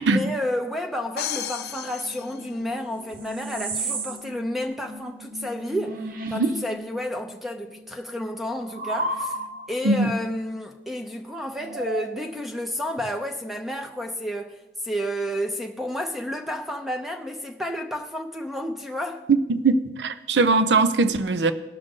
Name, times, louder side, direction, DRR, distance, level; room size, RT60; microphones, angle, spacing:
voice 1, 0.0-6.0 6.3-9.4 9.7-19.3, left 1 dB, ahead, 0.5 m, -31 dB
sound 1, 1.2-3.1, left 9 dB, 65° left, 0.6 m, -34 dB
sound 2, 1.6-7.2 7.5-9.9 11.6-12.6, right 2 dB, 50° right, 0.8 m, -35 dB
voice 2, 19.3-21.5, right 3 dB, 85° right, 0.6 m, -20 dB
18.0 x 6.5 x 3.7 m
head